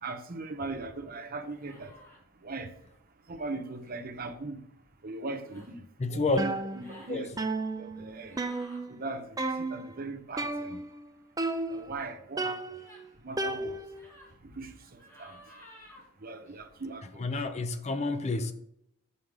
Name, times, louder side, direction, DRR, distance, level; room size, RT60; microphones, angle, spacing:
voice 1, 0.0-1.9 2.4-2.7 3.3-4.6 5.0-7.4 7.8-8.4 8.9-10.8 11.7-12.8 13.2-13.8 14.4-15.4 16.2-17.3, right 3 dB, 40° right, 0.9 m, -39 dB
sound 1, 1.5-2.2 3.8-4.0 5.3-5.7 6.6-7.1 8.2-8.8 12.7-13.1 13.9-14.3 15.0-16.0, left 1 dB, 15° left, 2.7 m, -54 dB
voice 2, 6.0-6.4 7.1-7.2 17.2-18.5, left 3 dB, 30° left, 0.6 m, -29 dB
sound 2, 6.4-7.1 7.4-9.1 9.4-9.9 10.4-11.0 11.4-12.0 12.4-14.1, right 2 dB, 15° right, 0.5 m, -34 dB
7.5 x 5.6 x 4.9 m
head